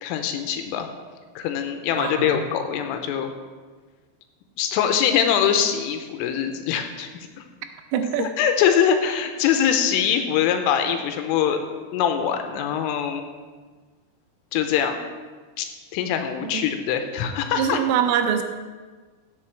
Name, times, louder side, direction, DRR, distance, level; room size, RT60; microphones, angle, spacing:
voice 1, 0.0-0.9 1.4-3.3 4.6-7.1 7.4-7.5 8.2-13.3 14.5-15.0 15.6-15.7 15.9-17.8, left 8 dB, 80° left, 6 dB, 3.2 m, -23 dB
voice 2, 2.0-2.4 7.9-8.3 16.4-16.6 17.6-18.4, right 8 dB, 80° right, 6 dB, 3.2 m, -24 dB
15.0 x 6.8 x 4.5 m, 1.4 s
omnidirectional pair, 5.9 m